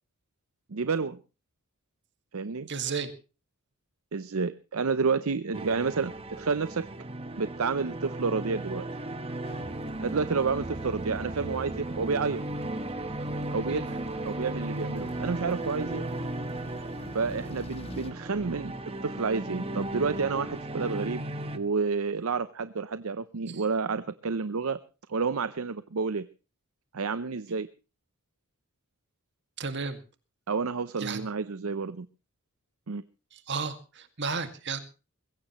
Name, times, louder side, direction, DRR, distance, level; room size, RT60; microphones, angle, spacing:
voice 1, 0.7-1.2 2.3-2.7 4.1-6.9 7.4-8.9 10.0-12.4 13.5-16.1 17.1-18.7 19.0-21.2 21.5-24.8 25.1-26.3 26.9-27.7 30.5-32.1 32.9-33.0, right 4 dB, 70° right, 14 dB, 0.7 m, -30 dB
voice 2, 2.7-3.1 13.7-13.9 23.5-23.6 29.6-30.0 31.0-31.3 33.3-34.8, right 5 dB, 55° right, 9 dB, 2.0 m, -33 dB
sound 1, 5.5-21.6, right 1 dB, 25° right, 1.3 m, -36 dB
sound 2, 9.4-18.1, left 1 dB, 25° left, 1.4 m, -48 dB
21.5 x 16.5 x 3.1 m, 0.33 s
head